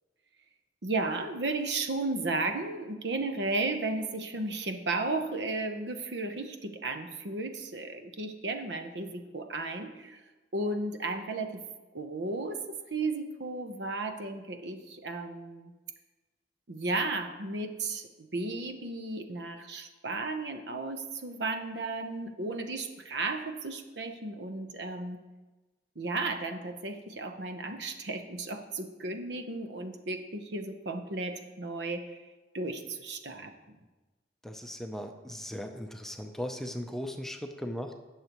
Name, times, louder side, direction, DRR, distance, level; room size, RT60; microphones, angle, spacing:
voice 1, 0.8-10.2 10.5-11.5 11.9-12.6 12.9-15.7 16.7-25.2 26.0-32.2 32.5-33.8, right 2 dB, 65° right, 6 dB, 0.9 m, -34 dB
voice 2, 34.4-38.0, equal, ahead, 4 dB, 0.5 m, -38 dB
17.5 x 6.6 x 3.0 m, 1.2 s
head